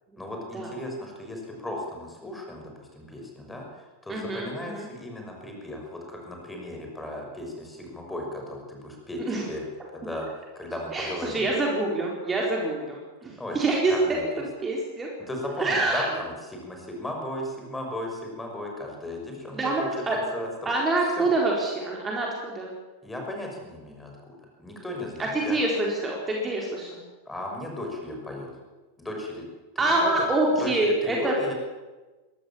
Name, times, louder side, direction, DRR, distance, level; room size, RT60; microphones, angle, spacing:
voice 1, 0.2-9.6 9.9-10.3 10.5-11.5 13.4-14.2 15.3-20.7 21.0-21.3 23.0-25.6 27.3-28.6 29.0-29.5 29.7-30.3 30.6-31.5, left 1 dB, 10° left, 1 dB, 6.1 m, -36 dB
voice 2, 4.1-4.9 9.2-9.5 10.9-13.9 14.6-15.1 15.6-16.0 19.5-20.2 20.7-22.7 25.2-27.0 29.8-31.3, right 2 dB, 15° right, -1 dB, 4.4 m, -26 dB
22.0 x 17.5 x 7.3 m, 1.2 s
figure-of-eight pair, 90°, 0 cm